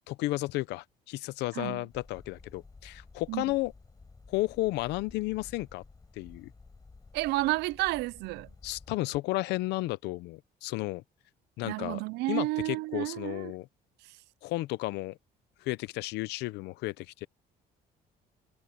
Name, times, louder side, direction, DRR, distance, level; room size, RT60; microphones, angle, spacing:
voice 1, 0.1-3.7 4.3-5.8 6.1-6.5 8.6-11.0 11.6-12.0 12.3-13.7 14.4-15.2 15.6-17.3, left 19 dB, 90° left, 0.7 m, -33 dB
sound 1, 1.9-8.9, left 3 dB, 20° left, 7.3 m, -53 dB
voice 2, 7.1-8.5 11.6-13.5, right 20 dB, 85° right, 0.4 m, -31 dB
cardioid pair, 110°, 17 cm